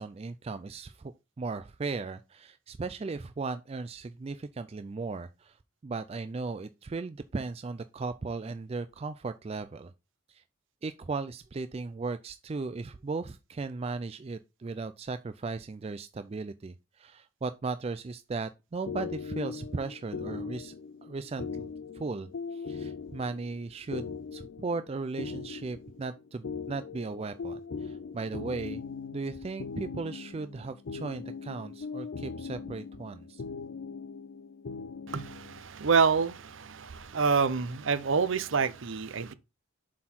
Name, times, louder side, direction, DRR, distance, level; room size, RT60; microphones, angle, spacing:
voice 1, 0.0-5.6 5.8-9.9 10.3-10.4 10.8-20.7 21.0-21.7 21.9-28.8 29.1-33.4, right 3 dB, 30° right, 0.3 m, -37 dB
sound 1, 18.9-35.6, left 5 dB, 55° left, 0.4 m, -40 dB
voice 2, 35.1-39.3, right 5 dB, 65° right, 0.6 m, -27 dB
7.3 x 4.4 x 4.3 m
head